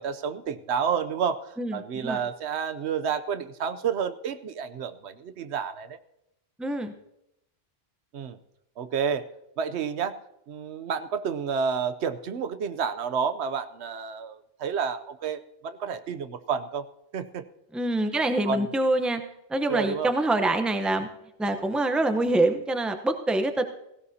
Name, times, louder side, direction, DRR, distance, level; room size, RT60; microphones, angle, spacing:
voice 1, 0.0-6.0 8.1-8.4 8.8-9.3 9.6-10.2 10.5-16.9 17.1-17.4 18.5-18.7 19.7-20.1, right 6 dB, 80° right, 11 dB, 1.0 m, -30 dB
voice 2, 1.6-2.2 6.6-6.9 17.7-19.2 19.5-21.1 21.4-23.6, right 2 dB, ahead, 7 dB, 0.7 m, -25 dB
17.0 x 16.5 x 2.8 m, 0.84 s
omnidirectional pair, 1.1 m